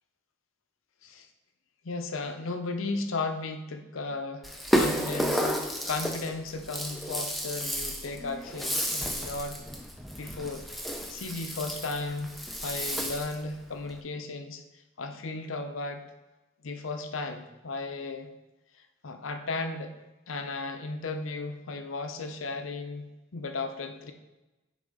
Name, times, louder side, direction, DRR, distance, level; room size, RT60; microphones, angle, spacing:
voice 1, 1.8-9.6 10.2-10.7 11.1-14.6 15.0-16.1 16.6-18.3 19.0-20.0 20.3-24.1, left 3 dB, 85° left, 7 dB, 0.7 m, -35 dB
Rattle (instrument), 4.4-13.4, equal, ahead, 0.4 m, -32 dB
9.0 x 3.6 x 3.7 m, 1.0 s
head